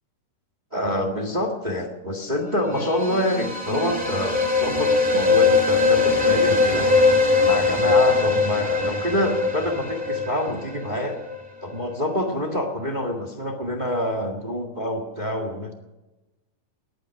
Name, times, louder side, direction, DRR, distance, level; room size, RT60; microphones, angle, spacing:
voice 1, 0.7-6.9 7.4-11.2 11.6-15.7, left 1 dB, 20° right, 3 dB, 1.2 m, -26 dB
sound 1, 2.6-11.4, left 4 dB, 5° right, 1.3 m, -21 dB
19.5 x 9.2 x 6.4 m, 1.1 s
omnidirectional pair, 3.7 m